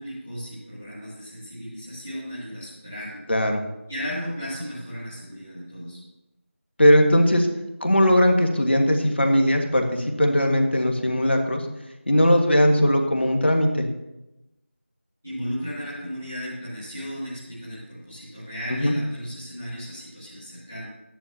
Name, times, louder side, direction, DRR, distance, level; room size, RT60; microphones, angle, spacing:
voice 1, 0.0-3.2 3.9-6.0 15.2-20.8, equal, 5° left, -14 dB, 0.8 m, -35 dB
voice 2, 3.3-3.6 6.8-7.5 7.8-11.7 12.1-13.9 18.7-18.9, equal, 55° left, 4 dB, 1.8 m, -19 dB
14.5 x 10.5 x 2.9 m, 0.95 s
figure-of-eight pair, 180°, 7 cm